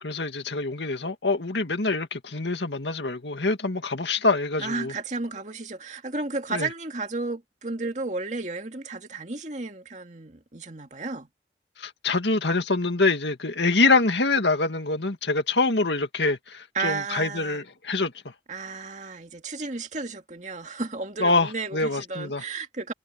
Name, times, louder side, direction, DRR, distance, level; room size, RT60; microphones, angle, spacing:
voice 1, 0.0-4.9 6.5-6.7 11.8-18.1 21.2-22.4, left 3 dB, 80° left, 2.1 m, -25 dB
voice 2, 4.6-11.3 16.7-17.6 18.5-22.9, right 3 dB, 40° right, 2.3 m, -33 dB
head